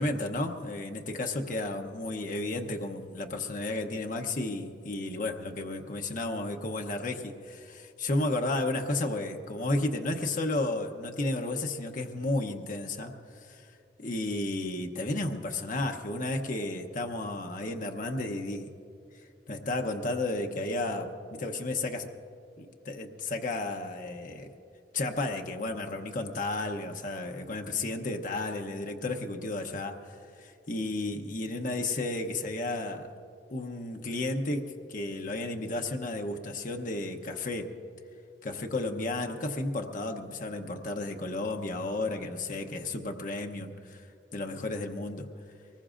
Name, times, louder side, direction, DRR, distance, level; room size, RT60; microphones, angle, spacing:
voice 1, 0.0-13.1 13.4-13.6 14.0-18.7 19.5-22.1 22.6-24.5 24.9-33.1 33.5-37.7 38.4-44.0 44.3-45.3, left 2 dB, 45° left, 3 dB, 0.8 m, -33 dB
23.5 x 20.0 x 2.5 m, 2.6 s
head